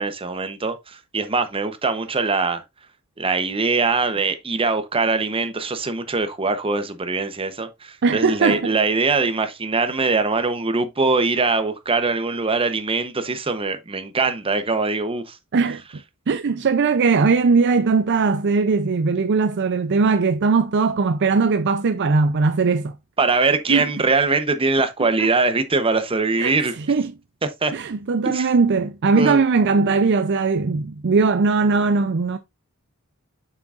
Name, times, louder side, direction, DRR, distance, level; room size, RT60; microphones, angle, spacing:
voice 1, 0.0-2.6 3.2-15.4 23.2-26.7 27.6-27.7 28.3-28.5 29.1-29.4, right 3 dB, 25° right, 0.8 m, -22 dB
voice 2, 8.0-8.7 15.5-15.8 16.3-22.9 23.7-23.9 25.2-25.3 26.4-27.1 27.7-32.4, right 4 dB, 55° right, 0.5 m, -19 dB
7.6 x 6.1 x 2.5 m
head